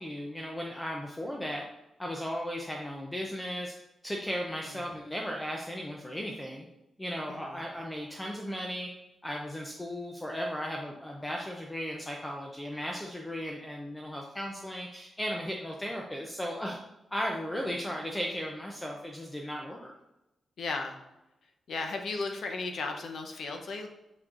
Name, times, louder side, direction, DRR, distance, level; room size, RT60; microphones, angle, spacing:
voice 1, 0.0-1.6 2.0-3.7 4.0-6.7 7.0-8.9 9.2-16.8 17.1-19.9, equal, 10° left, 0 dB, 0.5 m, -36 dB
voice 2, 20.6-21.0 21.7-23.9, left 3 dB, 60° left, 4 dB, 0.8 m, -35 dB
6.4 x 6.0 x 2.5 m, 0.94 s
wide cardioid pair, 165°, 0 cm